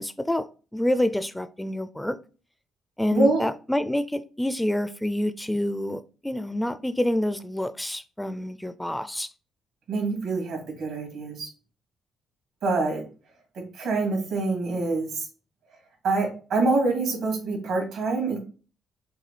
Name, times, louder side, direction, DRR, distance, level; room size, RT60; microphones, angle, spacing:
voice 1, 0.0-2.2 3.0-9.3, left 1 dB, 5° left, 0.4 m, -27 dB
voice 2, 3.1-3.4 9.9-11.5 12.6-13.0 13.5-15.3 16.0-18.4, right 3 dB, 80° right, 2.6 m, -25 dB
6.5 x 2.3 x 3.2 m
cardioid pair, 90°, 0 cm